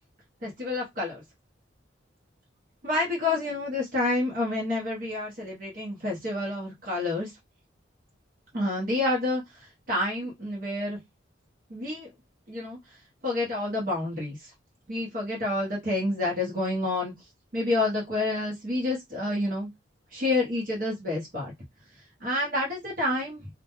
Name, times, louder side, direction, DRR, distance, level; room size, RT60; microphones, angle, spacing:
voice 1, 0.4-1.2 2.8-7.3 8.5-11.0 11.7-12.1 12.5-12.8 13.2-14.5 14.9-17.1 17.5-19.7 20.1-21.5 22.2-23.5, left 2 dB, 45° right, 0.8 m, -28 dB
2.1 x 2.1 x 2.9 m
head